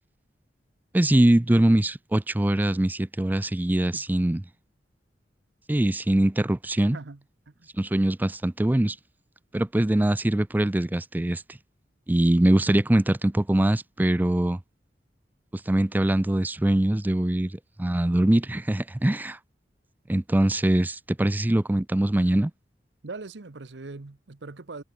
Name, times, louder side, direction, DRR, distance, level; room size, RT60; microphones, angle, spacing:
voice 1, 0.9-4.4 5.7-7.0 7.8-9.0 9.5-11.6 12.1-14.6 15.7-17.5 17.8-19.4 20.1-22.5, right 1 dB, 10° right, 0.4 m, -22 dB
voice 2, 6.9-7.7 23.0-24.8, right 3 dB, 85° right, 0.9 m, -41 dB
head